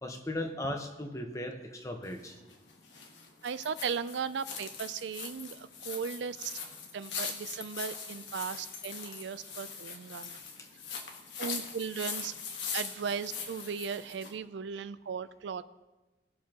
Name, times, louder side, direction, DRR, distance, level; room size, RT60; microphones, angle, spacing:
voice 1, 0.0-2.4 10.6-10.7, left 1 dB, 15° left, 4 dB, 1.0 m, -37 dB
sound 1, 2.0-14.4, left 6 dB, 85° left, 1.5 m, -41 dB
voice 2, 3.4-6.6 6.9-10.3 11.4-12.3 12.7-15.6, right 6 dB, 80° right, 14 dB, 0.4 m, -37 dB
20.0 x 7.3 x 3.0 m, 1.1 s
head